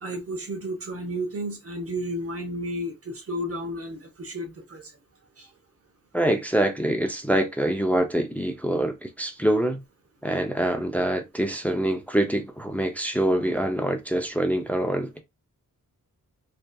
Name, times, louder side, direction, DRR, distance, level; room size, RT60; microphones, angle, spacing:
voice 1, 0.0-4.8, equal, 45° right, 0.8 m, -32 dB
voice 2, 6.1-9.8 10.2-15.2, right 1 dB, 5° left, 0.4 m, -25 dB
2.6 x 2.3 x 2.2 m
wide cardioid pair, 120°, 34 cm